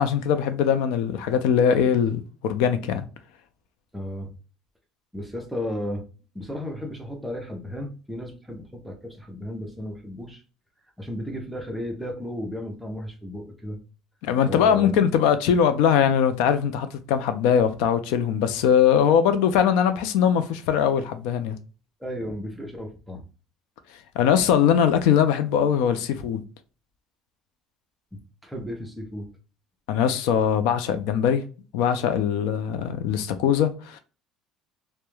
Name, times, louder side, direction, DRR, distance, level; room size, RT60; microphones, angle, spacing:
voice 1, 0.0-3.1 14.2-21.6 24.2-26.4 29.9-31.4 31.7-34.0, left 8 dB, 80° left, 0.3 m, -21 dB
voice 2, 3.9-4.3 5.1-6.0 6.3-10.4 11.0-13.8 14.5-15.0 22.0-23.2 28.1-29.3, left 1 dB, 5° right, 0.5 m, -34 dB
2.2 x 2.1 x 3.0 m
cardioid pair, 180°, 0 cm